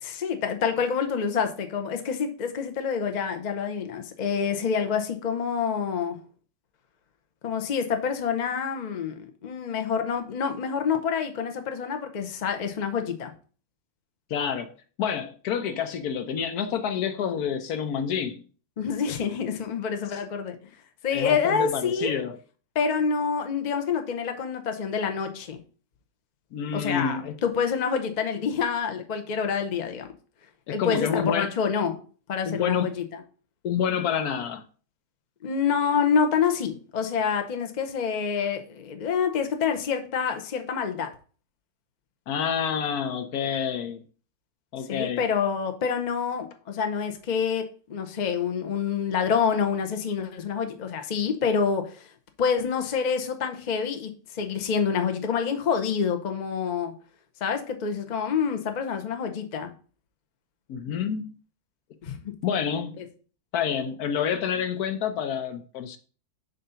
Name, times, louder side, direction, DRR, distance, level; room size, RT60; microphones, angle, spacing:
voice 1, 0.0-6.2 7.4-13.3 18.8-20.5 21.0-22.1 22.7-25.6 26.7-30.1 30.7-32.0 32.3-33.2 35.4-41.1 44.9-52.0 52.4-56.9 57.4-59.7 62.0-62.4 63.0-63.1, left 6 dB, 85° left, 0.4 m, -27 dB
voice 2, 14.3-14.7 15.0-18.4 20.1-20.2 21.1-22.4 26.5-27.3 30.7-31.5 32.5-33.0 33.6-34.6 42.3-44.0 44.7-45.2 60.7-61.4 62.4-63.1 63.5-66.0, left 7 dB, 65° left, 1.0 m, -28 dB
7.3 x 2.7 x 5.6 m
omnidirectional pair, 2.0 m